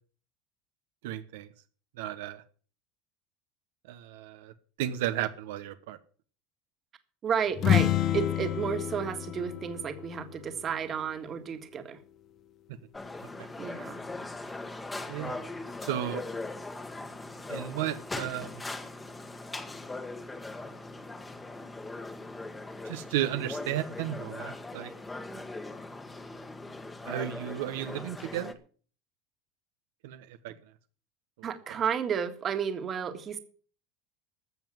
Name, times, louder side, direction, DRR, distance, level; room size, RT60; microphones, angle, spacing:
voice 1, 1.0-1.5 2.0-2.4 3.9-4.5 4.8-6.0 15.1-15.4 15.8-16.2 17.5-18.6 22.8-24.9 27.0-28.6 30.0-30.5 31.7-31.8, right 12 dB, 85° right, 9 dB, 1.1 m, -34 dB
voice 2, 7.2-12.0 13.6-14.0 25.3-25.4 31.4-33.4, right 7 dB, 30° right, 7 dB, 1.8 m, -32 dB
sound 1, 7.5-11.3, left 11 dB, 40° left, 0.8 m, -29 dB
sound 2, 12.9-28.5, left 2 dB, 10° left, 1.4 m, -40 dB
14.0 x 7.3 x 7.6 m, 0.43 s
supercardioid pair, 130°, 0 cm